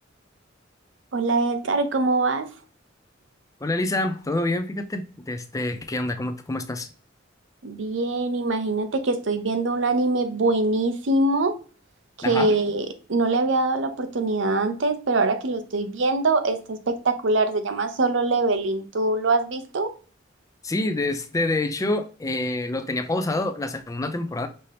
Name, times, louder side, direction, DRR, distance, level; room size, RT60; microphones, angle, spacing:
voice 1, 1.1-2.5 7.6-11.5 12.2-19.9, right 3 dB, 70° right, 0.7 m, -23 dB
voice 2, 3.6-6.9 12.2-12.5 20.6-24.5, left 2 dB, 20° left, 0.5 m, -27 dB
5.5 x 2.8 x 3.3 m
head